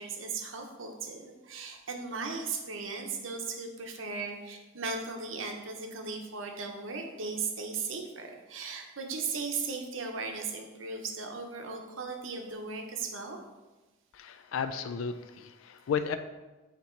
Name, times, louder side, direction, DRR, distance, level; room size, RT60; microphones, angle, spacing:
voice 1, 0.0-13.4, right 4 dB, 70° right, 3 dB, 0.8 m, -37 dB
voice 2, 14.1-16.2, left 6 dB, 80° left, 9 dB, 0.4 m, -33 dB
8.5 x 3.0 x 4.4 m, 1.2 s
head